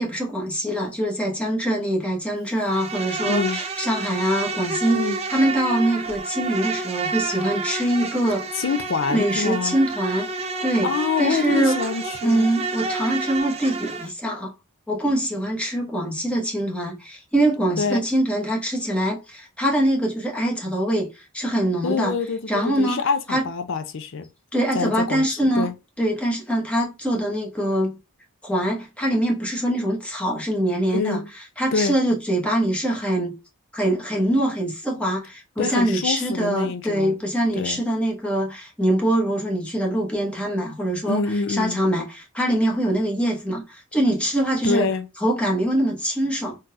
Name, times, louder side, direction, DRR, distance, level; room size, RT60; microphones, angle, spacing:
voice 1, 0.0-8.6 9.1-10.9 11.2-11.8 12.2-14.5 14.9-22.1 22.5-23.0 23.3-23.4 24.5-25.7 26.0-28.0 28.4-31.2 31.6-33.3 33.7-41.2 41.5-44.9 45.2-46.6, right 1 dB, 5° left, 1.0 m, -23 dB
Insect, 2.6-14.1, right 3 dB, 30° right, 0.5 m, -29 dB
voice 2, 3.2-3.6 4.9-5.2 8.5-9.8 10.8-12.5 17.8-18.0 21.8-24.3 24.7-25.7 30.9-31.3 31.7-31.9 35.6-37.2 37.5-37.8 41.1-41.8 44.6-45.1, left 5 dB, 60° left, 0.5 m, -26 dB
3.8 x 2.8 x 2.3 m
head